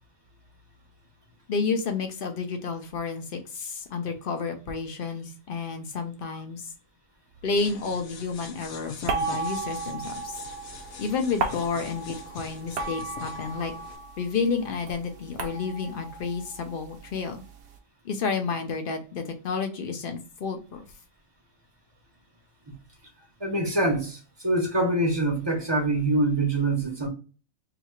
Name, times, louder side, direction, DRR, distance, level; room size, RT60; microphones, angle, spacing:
voice 1, 1.5-6.6 7.4-10.4 11.0-13.7 14.2-17.4 18.0-20.8, left 5 dB, 50° left, 6 dB, 0.7 m, -30 dB
sound 1, 7.6-14.0, left 5 dB, 80° left, 1.2 m, -43 dB
sound 2, 9.1-14.3 14.6-17.5, right 4 dB, 60° right, 0.8 m, -34 dB
voice 2, 23.4-27.1, right 2 dB, 25° right, 1 dB, 0.6 m, -25 dB
2.8 x 2.7 x 4.4 m, 0.35 s
omnidirectional pair, 1.4 m